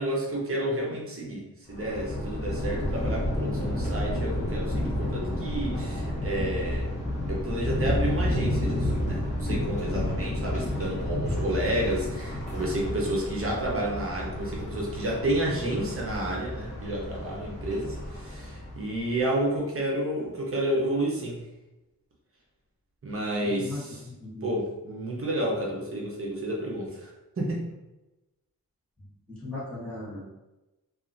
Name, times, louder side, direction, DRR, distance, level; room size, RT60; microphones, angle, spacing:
voice 1, 0.0-6.9 7.3-21.4 23.0-24.0 24.4-27.1 27.4-27.6, right 1 dB, 40° right, -3 dB, 0.7 m, -30 dB
Thunder, 1.7-19.1, left 1 dB, 20° left, 0.7 m, -31 dB
voice 2, 23.4-24.5 29.0-30.2, left 2 dB, 5° left, -10 dB, 1.3 m, -38 dB
2.7 x 2.4 x 2.5 m, 1.0 s
wide cardioid pair, 110°, 36 cm